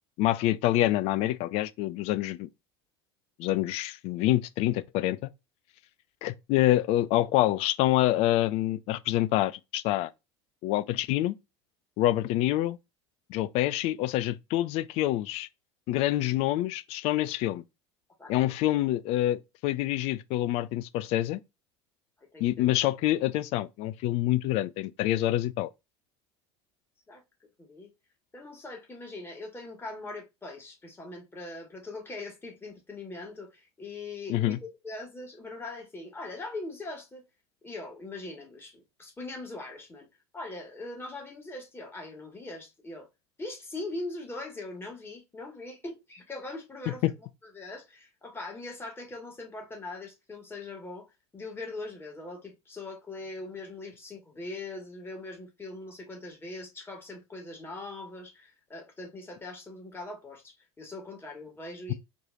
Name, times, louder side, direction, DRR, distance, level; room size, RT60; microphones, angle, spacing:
voice 1, 0.2-2.5 3.4-5.3 6.2-10.1 10.6-11.3 12.0-12.8 13.3-15.5 15.9-17.6 18.3-21.4 22.4-25.7 34.3-34.6 47.0-47.1, left 15 dB, 45° left, 0.4 m, -26 dB
voice 2, 18.2-18.5 22.2-22.6 27.1-27.2 27.6-27.9 28.3-37.3 37.6-40.1 40.3-43.1 43.4-47.0 47.4-61.9, left 2 dB, 15° left, 2.0 m, -41 dB
4.5 x 3.2 x 2.6 m
figure-of-eight pair, 70°, 14 cm